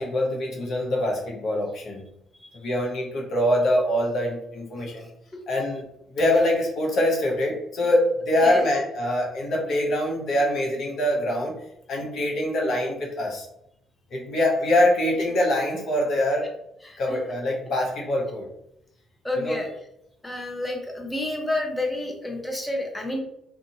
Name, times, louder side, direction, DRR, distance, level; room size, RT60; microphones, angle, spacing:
voice 1, 0.0-2.0 2.5-5.0 5.5-5.8 6.1-11.6 11.9-13.5 14.1-16.5 17.0-18.5 19.4-19.6, left 1 dB, 60° left, -1 dB, 0.8 m, -24 dB
voice 2, 16.8-17.2 19.2-19.7 20.2-23.2, left 1 dB, 15° left, 1 dB, 0.7 m, -29 dB
2.5 x 2.4 x 2.7 m, 0.77 s
hypercardioid pair, 45°, 0 cm